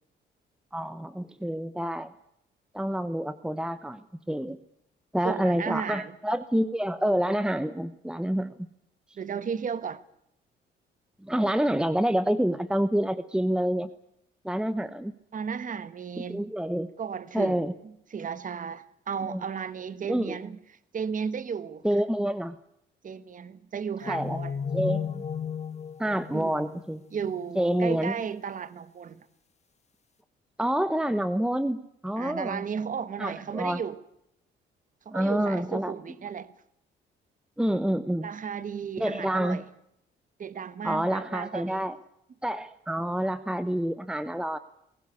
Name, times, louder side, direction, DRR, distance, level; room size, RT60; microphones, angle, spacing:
voice 1, 0.7-2.1 2.7-4.6 5.1-8.6 11.2-13.9 14.4-15.1 16.3-16.9 17.3-17.7 19.2-19.4 20.1-20.4 21.8-22.6 24.1-24.4 24.7-25.2 26.0-27.0 27.6-28.1 30.6-32.6 33.2-33.8 35.1-35.9 37.6-38.3 39.0-39.6 40.8-42.0 42.4-44.6, right 1 dB, 5° right, 0.9 m, -27 dB
voice 2, 5.2-6.1 9.2-10.0 15.3-16.5 17.0-17.6 18.1-20.6 20.9-21.8 23.0-24.6 26.3-26.5 27.1-29.3 32.2-34.0 35.0-36.5 38.2-39.6 40.4-41.9, right 6 dB, 40° right, 1.2 m, -34 dB
sound 1, 24.0-27.4, left 7 dB, 35° left, 1.9 m, -34 dB
20.5 x 18.0 x 9.6 m
cardioid pair, 90°, 20 cm